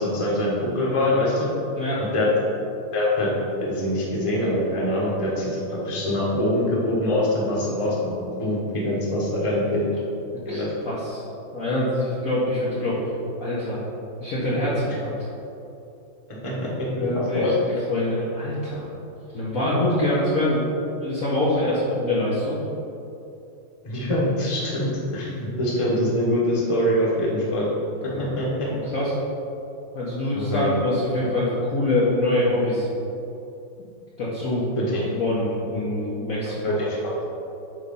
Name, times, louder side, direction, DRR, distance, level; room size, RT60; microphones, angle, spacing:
voice 1, 0.0-1.5 2.0-2.3 2.9-3.3 3.6-8.1 8.4-9.9 10.4-10.7 16.4-16.7 17.0-17.5 23.8-27.7 28.2-28.7 30.3-30.7 34.8-35.0 36.6-37.2, left 1 dB, 20° left, -5 dB, 1.2 m, -24 dB
voice 2, 10.5-11.2 11.5-13.0 13.4-13.8 14.2-15.1 17.0-17.5 17.9-18.9 19.3-22.6 27.9-28.3 28.6-29.2 29.9-32.9 34.2-34.7 35.2-36.8, left 1 dB, 50° left, -7 dB, 1.2 m, -25 dB
8.3 x 3.3 x 5.4 m, 2.8 s
omnidirectional pair, 2.2 m